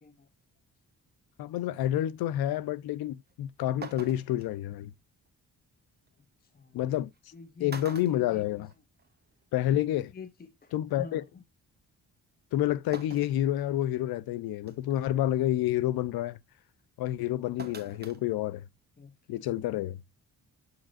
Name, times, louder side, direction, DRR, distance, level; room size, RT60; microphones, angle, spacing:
voice 1, 1.4-4.9 6.7-7.1 7.6-8.7 9.5-10.1 10.7-11.2 12.5-16.4 17.0-18.7 19.3-20.0, left 13 dB, 85° left, 0.5 m, -29 dB
sound 1, 3.3-3.4 3.8-4.5 6.1-6.2 7.1-7.3 7.7-9.1 9.4-9.5 10.7-10.8 12.9-13.4 14.0-14.1 14.7-15.0 17.6-18.2 18.5-18.6, right 4 dB, 25° right, 1.1 m, -44 dB
voice 2, 6.4-6.8 7.3-8.4 10.1-11.4 19.0-19.4, left 4 dB, 25° left, 0.7 m, -47 dB
7.0 x 6.5 x 2.5 m
cardioid pair, 75°, 36 cm